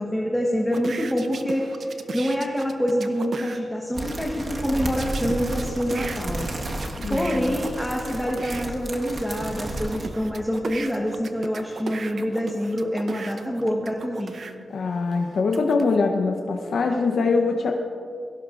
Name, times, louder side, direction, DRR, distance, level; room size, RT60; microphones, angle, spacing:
voice 1, 0.0-6.8 7.1-14.4, equal, ahead, -1 dB, 1.2 m, -26 dB
sound 1, 0.7-3.6 5.0-8.6 9.2-14.5 15.1-16.0, right 4 dB, 55° right, 0.8 m, -37 dB
sound 2, 3.9-10.1, right 1 dB, 40° right, 1.4 m, -32 dB
voice 2, 7.0-7.5 14.7-17.7, left 4 dB, 70° left, 3 dB, 0.8 m, -23 dB
22.0 x 17.0 x 2.5 m, 2.6 s
wide cardioid pair, 135°, 0 cm